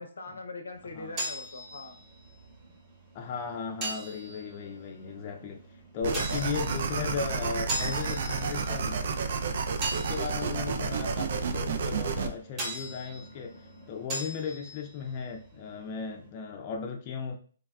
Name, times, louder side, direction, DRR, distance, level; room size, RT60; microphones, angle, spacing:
voice 1, 0.0-2.0, left 3 dB, 80° left, 5 dB, 0.6 m, -42 dB
sound 1, 0.7-16.3, right 1 dB, 25° right, 1.0 m, -41 dB
voice 2, 3.1-5.6 5.9-9.0 9.9-13.6 13.9-17.3, left 5 dB, 35° left, 1 dB, 0.4 m, -36 dB
sound 2, 6.0-12.3, right 5 dB, 55° right, 0.3 m, -31 dB
3.3 x 2.3 x 2.2 m, 0.43 s
hypercardioid pair, 140°, 0 cm